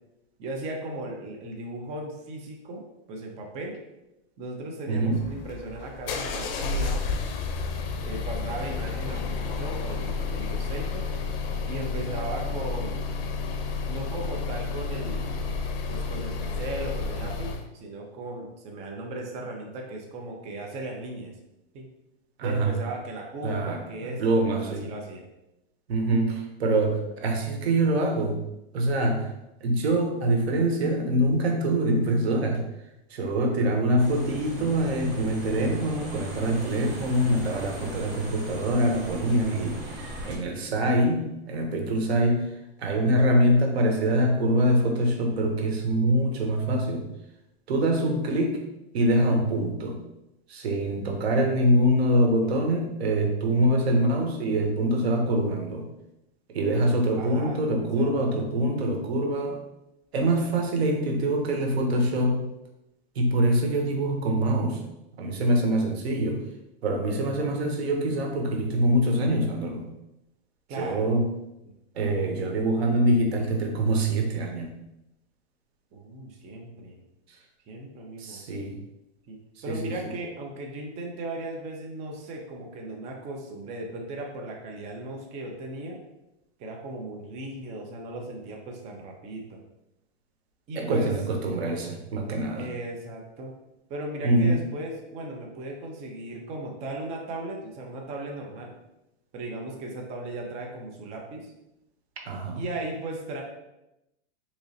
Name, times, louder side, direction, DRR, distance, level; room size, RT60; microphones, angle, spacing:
voice 1, 0.4-3.8 4.4-7.1 8.0-11.1 11.7-13.1 13.9-15.5 15.9-21.3 21.7-21.9 22.4-25.2 52.3-52.5 57.2-58.1 70.7-71.1 75.9-77.0 77.7-78.4 79.3-79.4 79.6-86.0 86.6-89.6 90.7-91.2 92.6-93.5 93.9-98.7 99.3-101.5 102.6-103.4, right 2 dB, 20° right, 0 dB, 0.5 m, -37 dB
voice 2, 4.9-5.2 22.4-22.7 23.4-24.9 25.9-28.4 28.7-29.3 29.6-32.6 33.1-39.8 40.2-42.5 42.8-47.1 47.7-48.6 48.9-50.0 50.5-55.9 56.5-59.6 60.1-62.5 63.1-64.8 65.2-66.5 66.8-69.9 70.8-71.3 71.9-74.7 78.2-78.8 79.7-79.9 90.8-92.7 94.2-94.6 102.3-102.6, right 1 dB, 90° right, 2 dB, 0.9 m, -24 dB
sound 1, 5.1-17.7, left 4 dB, 65° left, 0.6 m, -31 dB
sound 2, 34.0-40.4, right 1 dB, 35° right, 1.3 m, -39 dB
3.8 x 3.0 x 2.7 m, 0.90 s
supercardioid pair, 145°, 31 cm